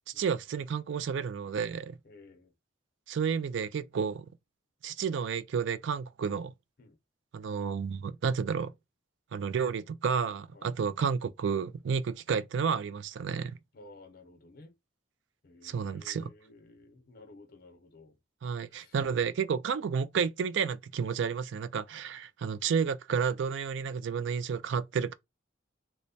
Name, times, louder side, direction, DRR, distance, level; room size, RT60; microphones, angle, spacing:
voice 1, 0.2-2.0 3.1-4.2 4.8-6.5 7.3-8.7 9.3-13.6 15.6-16.3 18.4-25.1, right 6 dB, 70° right, 0.3 m, -31 dB
voice 2, 2.0-2.5 6.8-7.0 10.5-10.7 13.7-14.7 15.4-18.2 18.7-18.9, left 2 dB, 50° left, 0.8 m, -54 dB
3.2 x 2.1 x 3.9 m
head